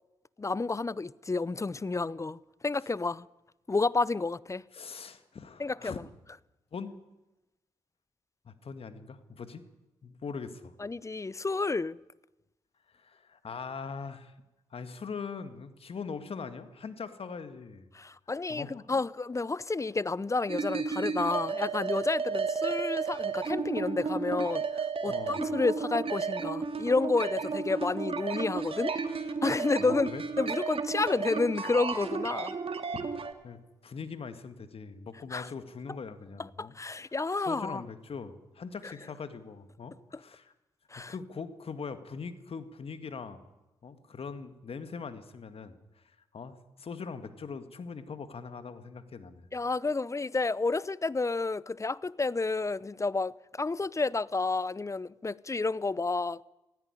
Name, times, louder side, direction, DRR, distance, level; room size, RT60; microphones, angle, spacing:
voice 1, 0.4-3.3 3.7-4.6 5.6-6.0 10.8-12.0 17.9-28.9 29.4-30.1 30.4-32.5 35.3-35.5 36.6-37.8 38.8-38.9 40.9-41.1 49.5-56.4, left 3 dB, 25° left, 0.7 m, -30 dB
voice 2, 4.7-6.0 6.7-6.9 8.4-9.6 10.0-10.8 12.9-14.3 14.7-17.9 18.5-18.8 25.1-25.4 29.8-30.2 32.9-37.1 37.4-40.5 41.1-43.4 43.8-45.7 46.3-49.5, left 5 dB, 55° left, 2.0 m, -41 dB
sound 1, 20.5-33.3, right 5 dB, 55° right, 2.3 m, -33 dB
16.5 x 16.0 x 10.0 m
supercardioid pair, 45°, 12 cm